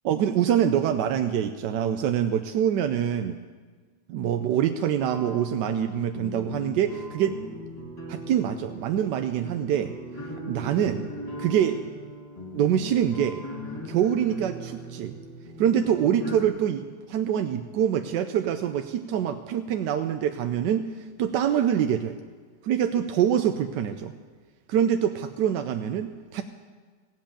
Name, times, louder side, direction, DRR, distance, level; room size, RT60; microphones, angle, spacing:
voice 1, 0.0-3.4 4.1-7.4 8.1-9.9 10.5-11.1 11.4-11.8 12.5-13.4 13.9-15.2 15.6-20.9 21.2-22.2 22.6-24.1 24.7-26.4, right 9 dB, 85° right, 7 dB, 1.3 m, -25 dB
sound 1, 4.9-16.5, equal, 20° left, 2.4 m, -39 dB
16.5 x 7.6 x 8.7 m, 1.5 s
omnidirectional pair, 1.8 m